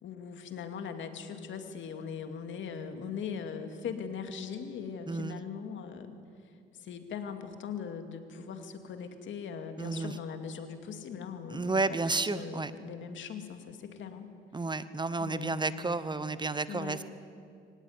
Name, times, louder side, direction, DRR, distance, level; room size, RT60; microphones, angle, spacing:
voice 1, 0.0-6.2 6.4-14.3 15.2-15.9 16.7-17.0, left 6 dB, 75° left, 7 dB, 2.5 m, -40 dB
voice 2, 5.1-5.4 9.8-10.1 11.5-12.7 14.5-17.0, right 3 dB, 20° right, 14 dB, 1.0 m, -31 dB
24.0 x 18.5 x 9.6 m, 2.4 s
cardioid pair, 90°, 20 cm